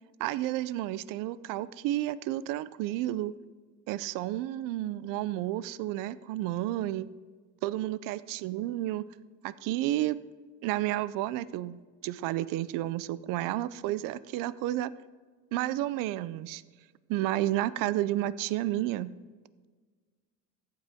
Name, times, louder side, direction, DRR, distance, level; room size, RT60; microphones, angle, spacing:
voice 1, 0.2-3.3 3.9-7.1 7.6-9.0 9.4-10.2 10.6-14.9 15.5-16.6 17.1-19.1, right 14 dB, 70° right, 18 dB, 0.5 m, -31 dB
14.5 x 8.3 x 3.5 m, 1.5 s
cardioid pair, 170°, 34 cm